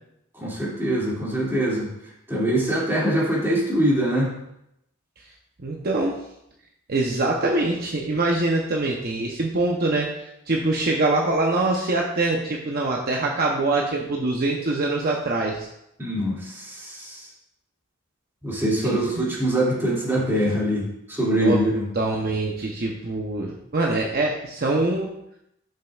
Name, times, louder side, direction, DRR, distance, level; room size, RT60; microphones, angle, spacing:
voice 1, 0.3-1.9 2.3-4.4 16.0-17.3 18.4-21.9, right 1 dB, 10° right, -6 dB, 2.4 m, -23 dB
voice 2, 5.6-6.2 6.9-10.1 10.5-15.7 18.8-19.0 21.4-21.6 21.9-25.1, right 2 dB, 45° right, -1 dB, 0.8 m, -24 dB
11.0 x 6.5 x 2.4 m, 0.80 s
head